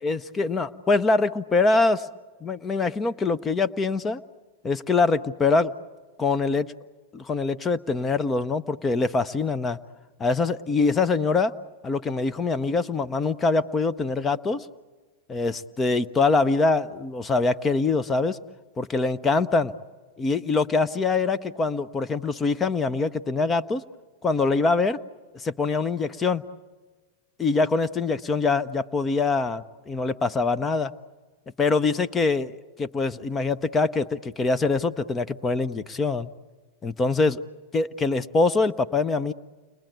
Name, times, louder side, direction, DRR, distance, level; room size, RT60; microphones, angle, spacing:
voice 1, 0.0-2.1 2.4-4.2 4.6-5.7 6.2-6.7 7.1-9.8 10.2-11.5 11.8-14.7 15.3-18.4 18.8-19.7 20.2-23.8 24.2-25.0 25.3-26.4 27.4-30.9 31.6-32.5 32.8-36.3 36.8-37.4 37.7-39.3, left 3 dB, 20° left, 13 dB, 0.7 m, -24 dB
30.0 x 21.5 x 9.1 m, 1.4 s
hypercardioid pair, 100°, 0 cm